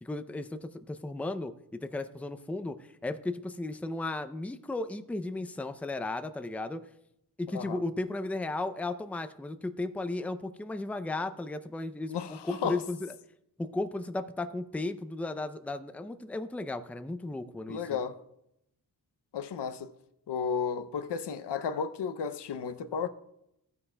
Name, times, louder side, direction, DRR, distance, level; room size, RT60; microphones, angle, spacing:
voice 1, 0.0-6.8 7.4-12.1 12.4-13.1 13.6-18.0, left 2 dB, 5° left, 0.4 m, -35 dB
voice 2, 12.1-12.8 17.7-18.2 19.3-19.9 20.3-23.1, left 6 dB, 90° left, 0.7 m, -33 dB
15.0 x 9.7 x 2.2 m
wide cardioid pair, 110°, 40 cm